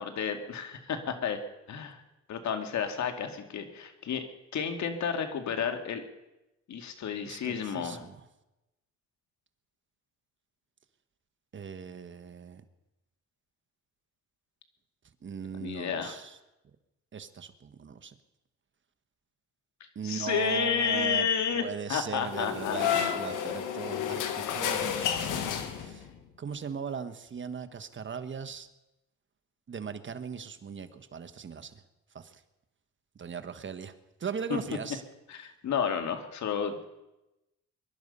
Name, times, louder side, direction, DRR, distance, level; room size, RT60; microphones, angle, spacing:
voice 1, 0.0-1.4 1.7-2.0 2.3-4.2 4.5-6.0 6.7-8.0 15.6-16.2 20.0-23.2 34.5-34.6 35.3-36.8, left 7 dB, 65° left, 6 dB, 2.3 m, -31 dB
voice 2, 7.2-8.3 11.5-12.6 15.2-16.4 17.1-18.1 19.9-26.1 26.4-28.7 29.7-31.8 32.1-32.4 33.1-33.9 34.2-35.0, right 6 dB, 40° right, 10 dB, 1.4 m, -38 dB
sound 1, 22.2-26.2, left 9 dB, 85° left, 1.8 m, -31 dB
23.0 x 11.5 x 5.5 m, 0.97 s
cardioid pair, 90°, 30 cm